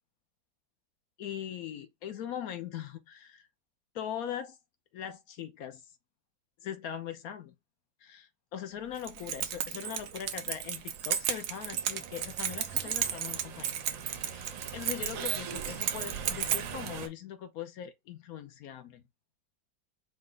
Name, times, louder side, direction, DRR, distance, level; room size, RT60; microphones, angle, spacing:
voice 1, 1.2-3.5 3.9-4.6 4.9-5.8 6.6-7.5 8.0-13.7 14.1-19.0, left 9 dB, 65° left, 0.9 m, -40 dB
Keys jangling, 9.0-16.9, right 9 dB, 70° right, 1.1 m, -34 dB
sound 1, 9.8-17.1, right 6 dB, 90° right, 1.5 m, -44 dB
5.0 x 2.1 x 3.7 m
omnidirectional pair, 2.0 m